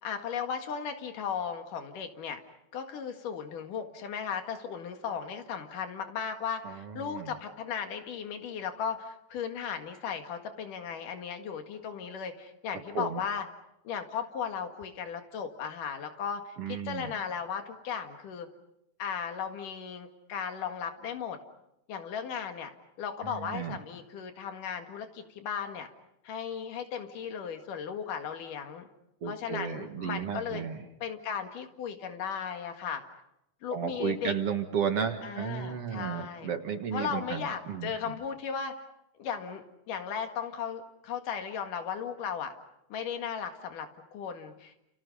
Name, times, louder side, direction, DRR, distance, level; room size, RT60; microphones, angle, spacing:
voice 1, 0.0-2.4 2.7-13.5 13.8-18.5 19.0-21.4 21.9-22.7 23.0-25.9 26.2-28.9 29.2-30.6 31.0-33.0 33.6-34.3 35.2-36.5 36.9-38.9 39.2-42.5 42.9-44.8, left 7 dB, 90° left, 6 dB, 3.5 m, -36 dB
voice 2, 6.7-7.3 12.9-13.2 16.6-17.1 23.2-23.8 29.2-30.8 33.7-37.9, right 7 dB, 55° right, 6 dB, 2.5 m, -33 dB
30.0 x 29.5 x 5.5 m, 0.83 s
omnidirectional pair, 3.6 m